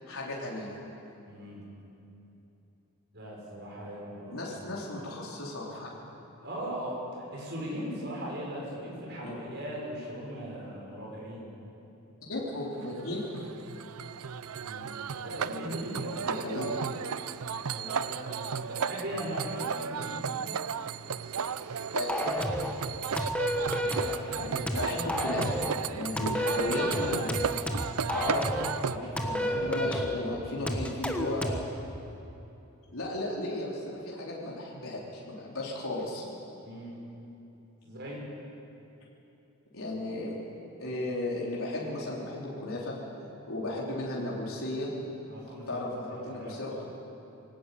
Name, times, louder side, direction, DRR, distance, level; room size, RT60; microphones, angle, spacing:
voice 1, 0.1-0.8 4.3-5.9 9.2-9.3 12.3-13.4 16.2-16.7 17.2-17.3 21.9-22.2 24.6-25.6 25.9-27.5 28.1-28.5 29.0-31.6 32.9-36.2 39.7-40.3 40.8-42.9 43.5-44.9 45.7-46.9, left 2 dB, 75° left, -5 dB, 3.9 m, -35 dB
voice 2, 1.3-1.7 3.1-4.4 6.4-11.5 14.6-14.9 15.2-16.7 17.6-20.4 23.6-24.6 28.8-30.0 36.6-36.9 37.8-38.3 45.3-46.6, equal, 50° right, -3 dB, 6.5 m, -39 dB
sound 1, 12.8-29.0, right 7 dB, 85° right, 0.6 m, -34 dB
sound 2, 22.1-22.8 23.2-24.2 24.7-25.8 26.2-28.8 29.2-30.2 30.7-31.7, equal, 5° left, 1.3 m, -31 dB
21.5 x 18.0 x 8.6 m, 2.9 s
head